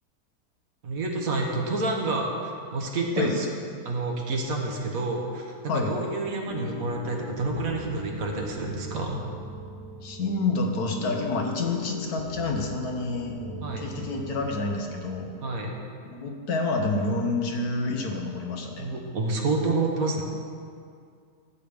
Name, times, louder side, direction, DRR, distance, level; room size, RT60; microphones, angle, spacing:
voice 1, 0.8-3.5 3.8-9.2 13.6-13.8 15.4-15.7 18.8-20.2, right 2 dB, 60° right, 0 dB, 1.5 m, -28 dB
sound 1, 6.4-15.2, left 1 dB, 50° left, 1.8 m, -40 dB
voice 2, 10.0-13.4 13.8-15.3 16.0-18.9, left 3 dB, 70° left, 2 dB, 1.5 m, -28 dB
12.5 x 8.2 x 3.5 m, 2.3 s
omnidirectional pair, 1.7 m